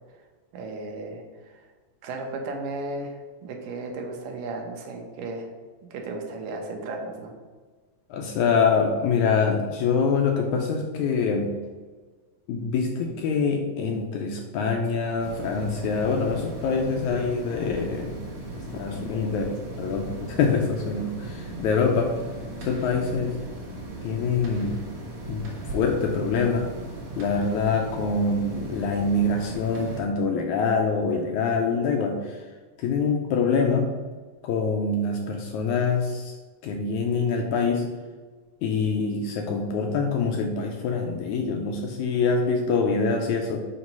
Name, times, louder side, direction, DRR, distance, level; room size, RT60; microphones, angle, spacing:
voice 1, 0.5-1.6 2.0-5.5 5.9-7.3, right 2 dB, 80° right, 2 dB, 2.5 m, -35 dB
voice 2, 8.1-11.6 12.5-18.2 18.5-22.2 22.6-23.4 24.0-24.9 25.3-26.7 27.2-32.4 32.8-34.0 34.4-36.3 36.6-37.9 38.6-43.7, left 4 dB, 80° left, 2 dB, 1.8 m, -25 dB
sound 1, 15.2-30.0, right 2 dB, 60° right, 2.5 m, -38 dB
7.9 x 3.0 x 5.3 m, 1.4 s
omnidirectional pair, 3.8 m